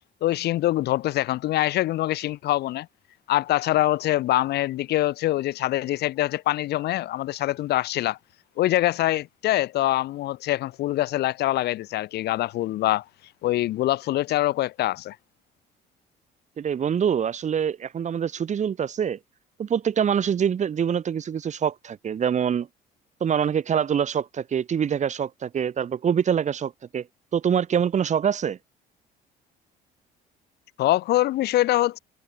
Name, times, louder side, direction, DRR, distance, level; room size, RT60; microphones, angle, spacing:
voice 1, 0.2-2.9 3.3-8.2 8.6-13.0 13.4-15.2 30.8-32.0, left 15 dB, 75° left, 6.0 m, -24 dB
voice 2, 16.6-19.2 19.6-22.7 23.2-27.1 27.3-28.6, right 8 dB, 45° right, 5.7 m, -25 dB
cardioid pair, 110°, 17 cm